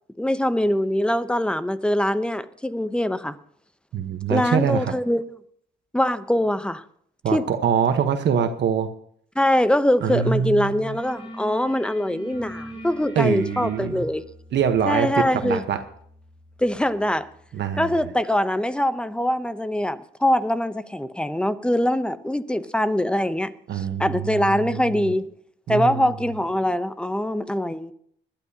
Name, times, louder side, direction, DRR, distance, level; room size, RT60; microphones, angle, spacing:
voice 1, 0.2-3.4 4.3-5.2 5.9-6.8 7.3-7.4 9.4-14.2 14.9-15.6 16.6-17.3 17.8-25.3 25.7-27.9, left 1 dB, 5° left, 0.8 m, -23 dB
voice 2, 3.9-4.9 7.2-8.9 10.0-11.0 13.1-14.0 14.5-15.8 17.5-18.0 23.7-25.1 25.7-26.1, right 7 dB, 65° right, 1.2 m, -24 dB
sound 1, 10.0-10.3 10.6-17.2, equal, 30° left, 7.0 m, -43 dB
21.0 x 12.0 x 2.9 m
cardioid pair, 90°, 20 cm